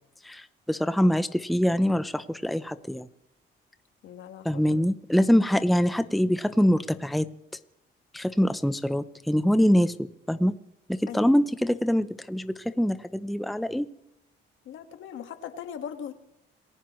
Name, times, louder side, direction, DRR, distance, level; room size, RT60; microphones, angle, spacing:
voice 1, 0.2-3.1 4.4-7.3 8.1-10.5 10.9-13.9, equal, ahead, 12 dB, 0.7 m, -24 dB
voice 2, 4.0-4.8 11.1-11.5 14.6-16.1, left 8 dB, 75° left, 7 dB, 1.7 m, -40 dB
28.0 x 15.5 x 3.1 m, 0.85 s
cardioid pair, 90°, 20 cm